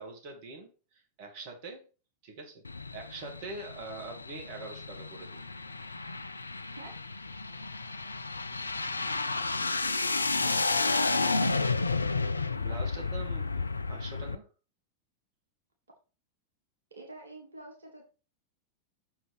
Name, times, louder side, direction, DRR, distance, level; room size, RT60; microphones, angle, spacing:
voice 1, 0.0-1.8 2.2-2.6 2.9-5.4 12.5-14.5, right 3 dB, 45° right, 3 dB, 2.1 m, -44 dB
sound 1, 2.6-14.4, left 3 dB, 80° left, 0.4 m, -32 dB
voice 2, 10.4-11.4 16.9-18.0, right 2 dB, 70° right, 1 dB, 1.6 m, -47 dB
6.3 x 4.7 x 4.7 m, 0.36 s
figure-of-eight pair, 90°, 0 cm